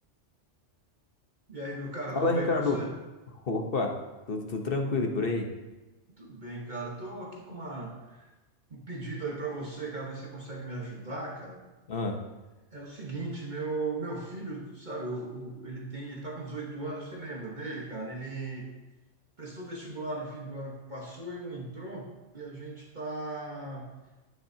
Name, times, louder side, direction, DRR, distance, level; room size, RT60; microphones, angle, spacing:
voice 1, 1.5-2.9 6.2-8.3 8.7-11.7 12.7-18.7 19.4-23.9, right 2 dB, 40° right, -2 dB, 1.4 m, -37 dB
voice 2, 2.1-2.8 3.4-4.0 4.3-5.5 11.9-12.2, left 3 dB, 50° left, 3 dB, 1.1 m, -28 dB
11.5 x 9.0 x 2.8 m, 1.1 s
omnidirectional pair, 1.2 m